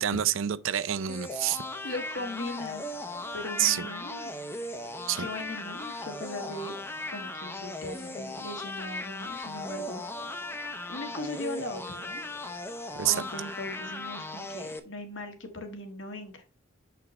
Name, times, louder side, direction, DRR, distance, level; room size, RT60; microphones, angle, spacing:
voice 1, 0.0-1.7 3.6-3.9 5.1-5.3 13.0-13.2, right 11 dB, 75° right, 0.5 m, -27 dB
sound 1, 1.1-14.8, left 2 dB, 10° left, 0.5 m, -37 dB
voice 2, 1.8-2.9 3.3-4.3 5.2-6.7 7.1-10.0 10.9-12.2 13.0-16.5, left 2 dB, 70° left, 1.6 m, -39 dB
6.9 x 5.8 x 3.1 m
head